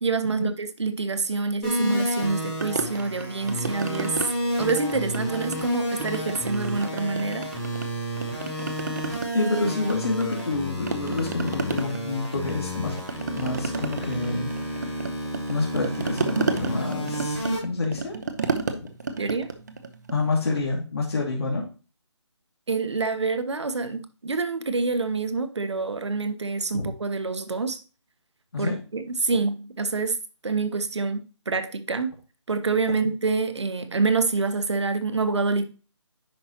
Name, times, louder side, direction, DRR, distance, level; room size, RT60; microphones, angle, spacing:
voice 1, 0.0-4.2 4.6-7.5 19.2-19.5 22.7-27.8 28.6-30.2 30.4-32.1 32.5-35.7, right 4 dB, 65° right, 1.1 m, -26 dB
sound 1, 1.6-17.6, equal, ahead, 0.5 m, -31 dB
sound 2, 2.6-4.3 4.6-5.7 6.0-7.9 8.2-10.6 10.9-20.7, right 4 dB, 35° right, 0.7 m, -32 dB
voice 2, 9.3-13.0 13.3-14.9 15.5-18.2 20.1-21.6 26.7-26.9 28.5-28.8, left 3 dB, 55° left, 2.4 m, -28 dB
9.9 x 5.3 x 2.9 m
figure-of-eight pair, 170°, 16 cm